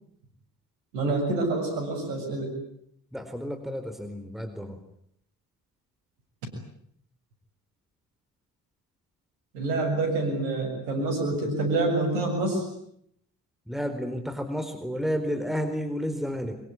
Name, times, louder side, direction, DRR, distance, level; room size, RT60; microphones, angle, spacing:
voice 1, 0.9-2.5 9.5-12.6, right 2 dB, 85° right, 4 dB, 7.3 m, -27 dB
voice 2, 3.1-4.8 13.7-16.6, equal, ahead, 8 dB, 4.4 m, -31 dB
25.0 x 23.0 x 9.7 m, 0.71 s
hypercardioid pair, 40°, 48 cm